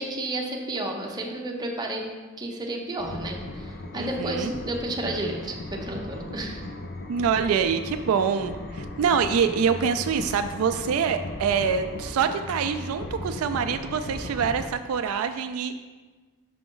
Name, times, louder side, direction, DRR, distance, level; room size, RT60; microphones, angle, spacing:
voice 1, 0.0-2.0 2.4-6.6, right 1 dB, 20° right, -1 dB, 0.7 m, -31 dB
sound 1, 3.0-14.7, left 2 dB, 50° left, 0.5 m, -37 dB
voice 2, 3.9-4.5 7.1-15.8, right 6 dB, 75° right, 9 dB, 0.3 m, -25 dB
5.9 x 5.0 x 3.8 m, 1.3 s
head